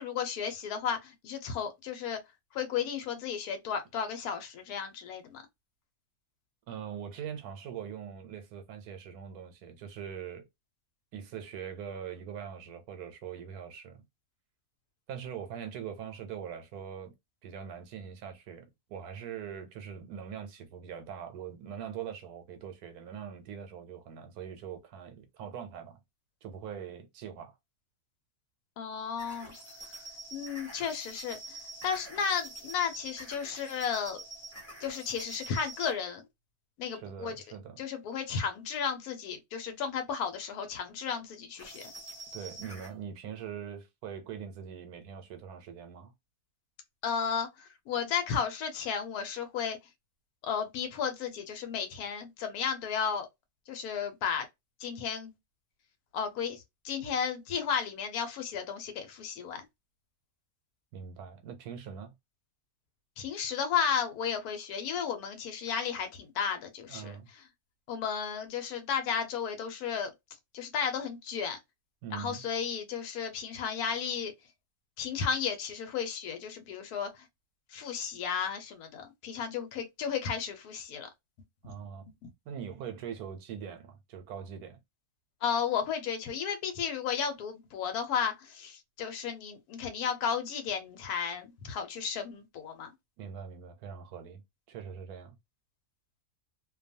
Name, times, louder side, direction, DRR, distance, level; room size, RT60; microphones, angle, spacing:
voice 1, 0.0-2.2 2.5-5.4 28.8-29.5 30.3-34.2 34.8-36.2 36.8-37.3 37.8-41.8 47.0-49.8 50.4-53.3 53.7-54.5 54.8-55.3 56.1-59.7 63.2-67.2 67.9-70.1 70.5-71.6 72.1-74.3 75.0-77.2 77.7-81.1 81.6-81.7 85.4-92.9, left 7 dB, 80° left, 1.2 m, -33 dB
voice 2, 6.7-10.4 11.1-14.0 15.1-17.1 17.4-26.0 26.4-27.6 36.9-37.8 42.3-46.1 60.9-62.1 66.9-67.3 72.0-72.5 81.6-82.1 82.5-84.8 93.2-94.4 94.7-95.4, right 8 dB, 90° right, 1.2 m, -42 dB
sound 1, 29.2-36.0 41.6-42.9, right 2 dB, 15° left, 0.7 m, -46 dB
2.6 x 2.3 x 2.6 m
omnidirectional pair, 1.6 m